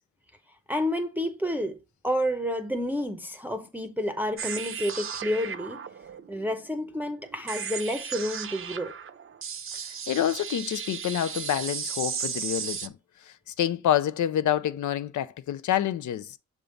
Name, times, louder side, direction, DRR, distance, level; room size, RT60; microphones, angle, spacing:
voice 1, 0.7-1.8 2.0-5.8 6.3-8.9, equal, 5° right, 0.7 m, -30 dB
sound 1, 4.4-12.9, right 7 dB, 45° right, 0.6 m, -35 dB
voice 2, 10.1-12.9 13.3-16.4, left 11 dB, 80° left, 0.5 m, -27 dB
6.9 x 3.7 x 3.8 m
cardioid pair, 75°, 29 cm